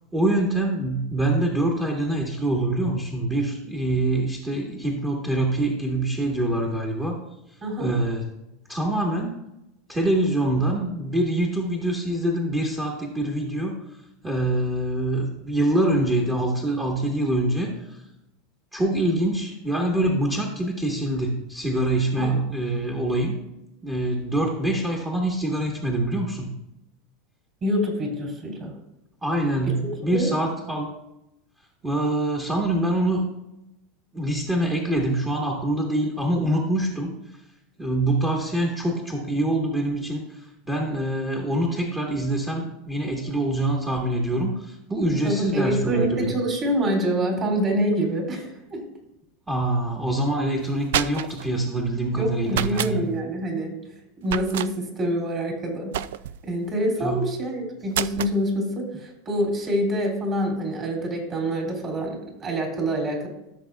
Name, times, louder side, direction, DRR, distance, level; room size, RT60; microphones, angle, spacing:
voice 1, 0.1-7.2 7.8-8.2 8.7-9.4 9.9-13.8 14.2-18.0 18.7-23.4 23.8-26.6 29.2-30.9 31.8-33.3 34.1-37.1 37.8-46.4 49.5-53.1 57.0-57.3, right 1 dB, 15° right, -1 dB, 1.5 m, -25 dB
voice 2, 7.6-8.0 22.2-22.4 27.6-28.7 29.6-29.7 30.0-30.3 45.2-48.8 52.1-53.7 54.2-55.9 56.4-63.3, right 1 dB, 35° right, 0 dB, 3.5 m, -26 dB
sound 1, 50.6-51.5 52.5-53.0 54.3-54.7 55.9-56.5 57.9-58.4, right 10 dB, 80° right, 0.3 m, -28 dB
15.5 x 6.8 x 2.4 m, 0.88 s
supercardioid pair, 135°, 0 cm